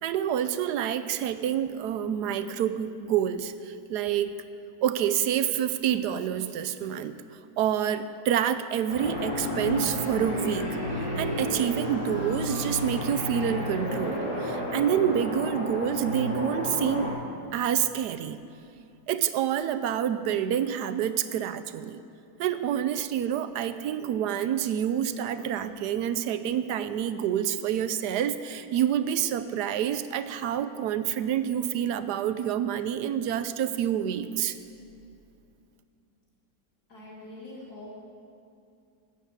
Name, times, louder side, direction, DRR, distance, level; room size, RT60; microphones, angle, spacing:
voice 1, 0.0-4.3 4.8-7.1 7.6-17.1 17.5-18.4 19.1-22.0 22.4-34.6, right 9 dB, 75° right, 12 dB, 1.1 m, -28 dB
sound 1, 8.9-17.1, left 1 dB, 80° left, 4.0 m, -31 dB
voice 2, 36.9-37.9, left 1 dB, 65° left, -6 dB, 3.2 m, -44 dB
13.0 x 8.0 x 7.9 m, 2.5 s
omnidirectional pair, 1.9 m